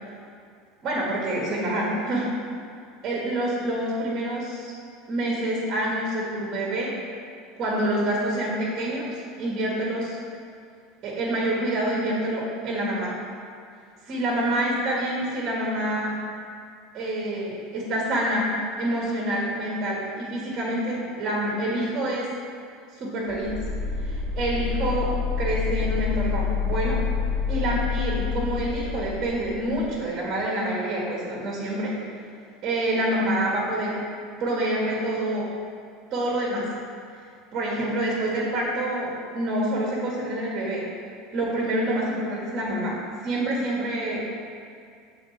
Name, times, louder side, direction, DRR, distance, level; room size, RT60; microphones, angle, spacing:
voice 1, 0.8-2.3 3.0-4.7 5.1-6.9 7.6-10.2 11.0-13.1 14.1-16.2 16.9-18.5 18.8-22.3 23.0-23.5 24.0-27.0 27.5-32.0 32.6-34.0 34.4-35.5 36.1-36.7 37.5-40.9 41.3-44.3, right 1 dB, 45° right, -4 dB, 1.6 m, -27 dB
sound 1, 23.3-30.0, left 6 dB, 25° left, 0.6 m, -28 dB
6.5 x 3.8 x 4.9 m, 2.3 s
supercardioid pair, 100°, 0 cm